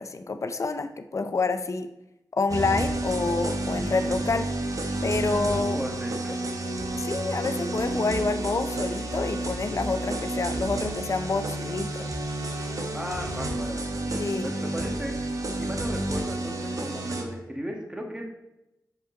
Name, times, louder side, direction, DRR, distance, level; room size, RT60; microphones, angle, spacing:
voice 1, 0.0-1.9 2.3-4.5 5.0-5.8 6.9-12.1 14.2-14.5, left 3 dB, 45° left, 9 dB, 0.5 m, -28 dB
sound 1, 2.5-17.2, right 2 dB, 55° right, 0.9 m, -30 dB
voice 2, 5.7-6.4 12.9-18.3, equal, 10° right, 1 dB, 1.6 m, -36 dB
7.5 x 5.0 x 3.9 m, 0.91 s
cardioid pair, 50°, 7 cm